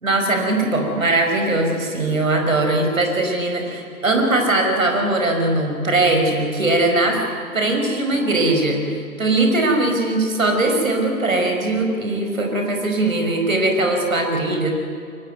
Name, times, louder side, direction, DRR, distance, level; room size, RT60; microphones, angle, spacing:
voice 1, 0.0-7.2 7.5-14.7, right 2 dB, 60° right, 4 dB, 5.4 m, -20 dB
23.5 x 18.5 x 9.4 m, 2.3 s
figure-of-eight pair, 135°, 44 cm